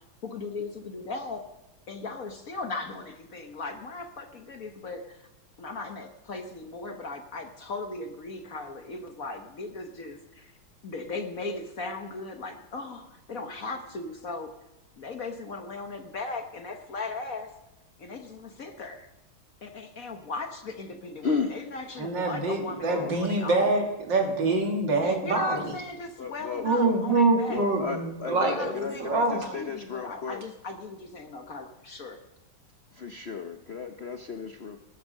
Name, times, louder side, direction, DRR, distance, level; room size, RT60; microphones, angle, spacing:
voice 1, 0.2-1.5 1.9-5.3 5.6-10.5 10.8-14.5 15.0-17.5 18.0-19.1 19.6-23.7 25.0-27.6 28.4-32.2, left 3 dB, 50° left, 6 dB, 1.3 m, -37 dB
voice 2, 21.2-21.6 22.9-23.1 26.2-27.0 27.5-30.4 32.9-34.8, left 5 dB, 80° left, 6 dB, 0.5 m, -34 dB
voice 3, 22.0-25.7 26.6-29.5, right 2 dB, 60° right, 3 dB, 2.9 m, -25 dB
19.5 x 10.0 x 6.4 m, 0.99 s
omnidirectional pair, 2.3 m